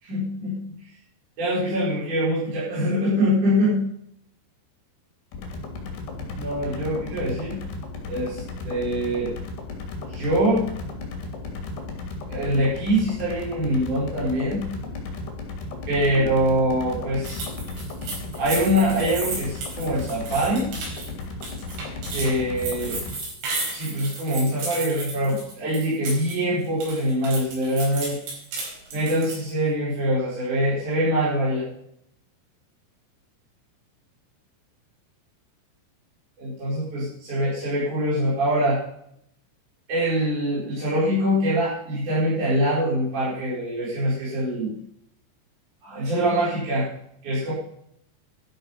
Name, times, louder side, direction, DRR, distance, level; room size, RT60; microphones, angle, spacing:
voice 1, 0.0-0.6 1.4-3.8 6.3-7.6 8.1-9.3 10.1-10.6 12.3-14.6 15.9-17.4 18.4-20.7 22.1-23.0 23.7-28.2 28.9-31.7 36.4-38.8 39.9-44.7 45.8-46.9 47.2-47.5, equal, 45° right, -9 dB, 6.2 m, -24 dB
sound 1, 5.3-23.1, left 3 dB, 65° left, 4.6 m, -35 dB
sound 2, 17.2-26.4 26.6-29.5, right 3 dB, 85° right, 7.0 m, -34 dB
12.5 x 12.0 x 5.7 m, 0.73 s
omnidirectional pair, 5.1 m